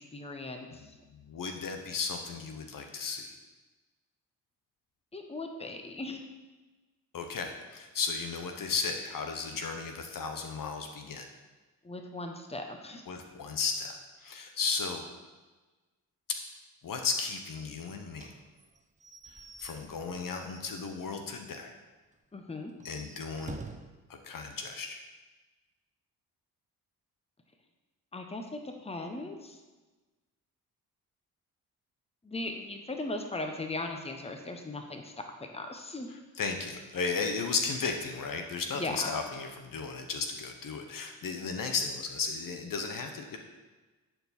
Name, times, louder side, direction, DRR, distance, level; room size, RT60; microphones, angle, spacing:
voice 1, 0.0-0.9 5.1-6.2 11.8-13.0 22.3-22.7 28.1-29.6 32.2-36.1 38.7-39.1, left 2 dB, 15° left, 4 dB, 1.1 m, -38 dB
voice 2, 1.1-3.3 7.1-11.3 13.1-14.0 14.2-15.0 16.8-18.3 19.6-21.7 22.8-23.6 24.1-25.0 36.4-43.4, left 4 dB, 60° left, 5 dB, 1.1 m, -34 dB
Slam / Squeak / Wood, 18.2-21.4 21.7-21.8 22.1-22.2 22.7-24.0, right 3 dB, 20° right, 0.7 m, -48 dB
10.0 x 4.6 x 4.4 m, 1.2 s
supercardioid pair, 55°, 38 cm